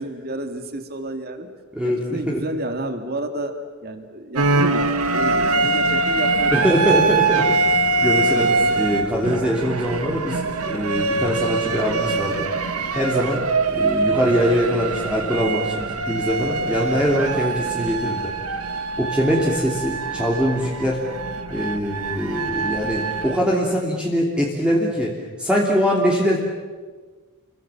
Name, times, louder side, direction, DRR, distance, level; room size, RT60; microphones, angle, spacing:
voice 1, 0.0-1.5 1.8-6.7 8.3-8.9, right 1 dB, 45° right, 7 dB, 2.4 m, -31 dB
voice 2, 1.7-2.4 6.5-12.5 12.9-13.4 13.7-18.3 19.0-21.0 21.5-26.4, equal, 5° right, -3 dB, 3.0 m, -23 dB
sound 1, 4.3-23.4, right 3 dB, 80° right, 1.9 m, -23 dB
29.5 x 23.5 x 7.2 m, 1.4 s
head